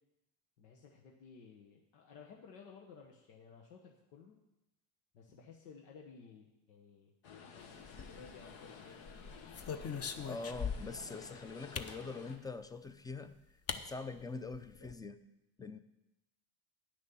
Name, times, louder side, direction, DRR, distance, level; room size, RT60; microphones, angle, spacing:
voice 1, 0.6-4.4 5.1-7.1 8.1-9.4, left 5 dB, 85° left, 0 dB, 1.3 m, -56 dB
sound 1, 7.2-12.4, left 6 dB, 70° left, 1.5 m, -53 dB
sound 2, 7.8-8.5 9.1-11.1 11.7-12.0 13.1-13.2 13.7-13.8 14.2-14.3 14.5-14.9, left 6 dB, 30° left, 0.8 m, -41 dB
voice 2, 10.2-13.4 13.8-15.2 15.6-15.8, left 3 dB, 10° left, 12 dB, 0.4 m, -44 dB
9.9 x 6.3 x 7.0 m, 0.91 s
supercardioid pair, 95°, 48 cm